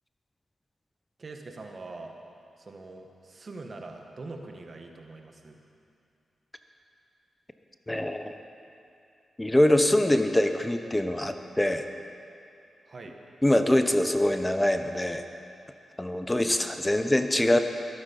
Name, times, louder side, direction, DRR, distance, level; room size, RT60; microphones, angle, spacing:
voice 1, 1.2-2.1 2.6-5.6 12.9-13.1 16.8-17.0, right 3 dB, 50° right, 3 dB, 1.7 m, -43 dB
voice 2, 7.9-8.3 9.4-11.8 13.4-15.2 16.0-17.6, left 1 dB, 15° left, 7 dB, 1.0 m, -24 dB
21.5 x 9.1 x 5.5 m, 2.6 s
supercardioid pair, 45°, 0 cm